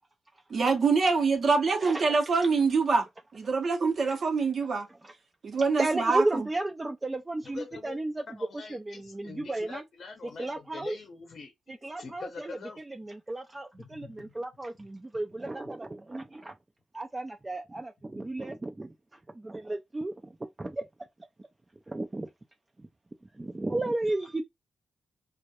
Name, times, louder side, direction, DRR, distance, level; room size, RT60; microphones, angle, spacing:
voice 1, 0.5-4.9 5.4-6.5, right 4 dB, 60° right, 0.6 m, -25 dB
voice 2, 1.8-2.2 4.1-4.2 5.0-5.2 5.8-8.2 8.5-9.8 10.4-11.0 11.7-16.6 16.9-20.9 21.4-21.5 21.9-22.3 22.8-22.9 23.3-24.4, right 2 dB, 25° right, 0.3 m, -34 dB
voice 3, 7.5-8.0 8.3-13.1 13.8-14.4 18.2-18.3, left 4 dB, 65° left, 0.6 m, -44 dB
2.1 x 2.0 x 2.8 m
cardioid pair, 60°, 0 cm